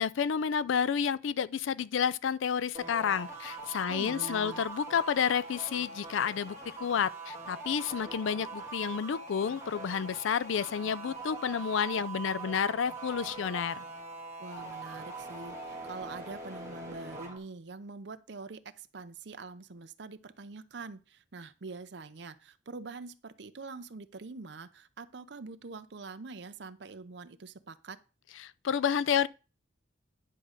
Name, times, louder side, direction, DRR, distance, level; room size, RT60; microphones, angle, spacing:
voice 1, 0.0-13.8 28.4-29.3, left 7 dB, 75° left, 0.4 m, -30 dB
sound 1, 2.7-17.4, right 3 dB, 15° right, 1.7 m, -42 dB
voice 2, 3.9-4.7 14.4-28.0, right 4 dB, 60° right, 0.6 m, -44 dB
9.9 x 3.7 x 6.5 m
head